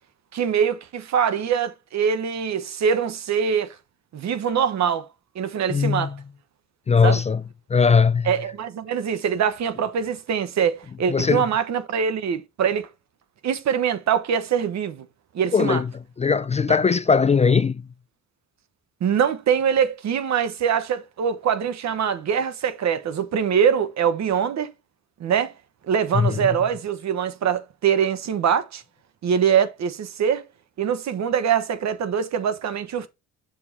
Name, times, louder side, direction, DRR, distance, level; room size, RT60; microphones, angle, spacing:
voice 1, 0.3-3.8 4.1-5.1 5.3-6.1 7.0-7.2 8.2-12.9 13.4-15.1 15.3-15.8 16.7-16.8 19.0-24.7 25.2-25.5 25.9-28.8 29.2-30.4 30.8-33.1, right 7 dB, 65° right, 1.2 m, -23 dB
voice 2, 5.7-6.2 6.9-7.4 7.7-8.3 11.1-11.4 15.5-15.9 16.2-17.8 26.1-26.5, left 5 dB, 25° left, 0.4 m, -19 dB
7.0 x 5.1 x 4.0 m
cardioid pair, 90°, 30 cm